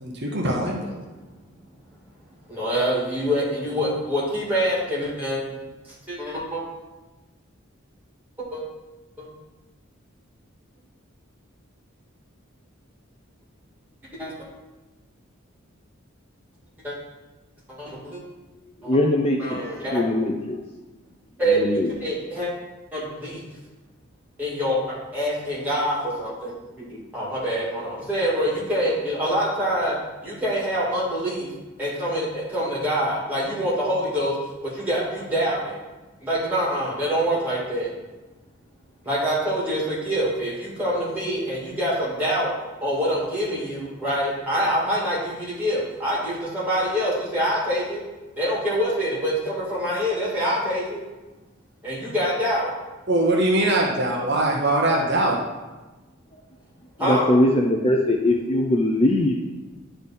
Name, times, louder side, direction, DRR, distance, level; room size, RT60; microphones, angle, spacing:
voice 1, 0.0-0.8 53.1-55.4, right 1 dB, 50° right, -1 dB, 1.0 m, -22 dB
voice 2, 2.5-5.6 6.1-6.6 8.5-8.6 9.2-9.3 14.2-14.3 16.8-17.0 17.8-18.2 18.8-19.0 19.4-20.0 21.4-22.5 22.9-23.4 24.4-24.8 25.1-31.5 31.8-34.3 34.7-35.8 36.2-37.9 39.0-42.5 42.8-48.0 48.4-51.0 51.8-52.7 57.0-57.3, equal, 10° right, -7 dB, 2.2 m, -25 dB
voice 3, 18.8-19.6 19.9-20.6 21.5-21.9 57.0-59.4, left 1 dB, 25° left, 1 dB, 0.4 m, -21 dB
9.8 x 3.4 x 4.2 m, 1.1 s
head